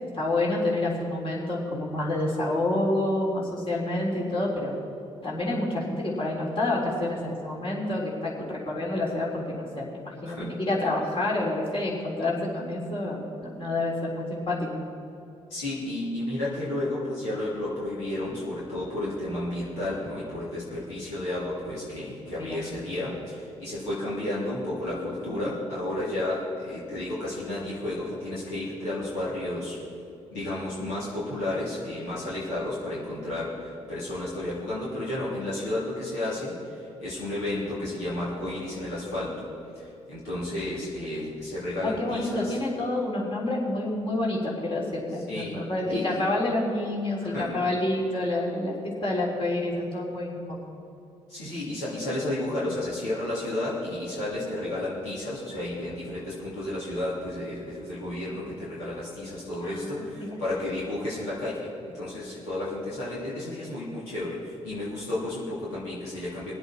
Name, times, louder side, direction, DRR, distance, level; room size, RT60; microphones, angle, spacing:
voice 1, 0.1-4.7 5.2-14.8 22.4-22.7 41.8-44.8 45.1-48.7 49.0-50.6 59.6-59.9 60.2-60.3, left 2 dB, 35° left, -4 dB, 3.5 m, -28 dB
voice 2, 15.5-29.8 30.3-39.5 39.7-42.6 45.3-45.6 45.9-46.1 47.2-47.6 51.3-66.5, left 1 dB, 70° left, -9 dB, 3.0 m, -32 dB
23.0 x 8.0 x 4.3 m, 2.8 s
figure-of-eight pair, 40°, 16 cm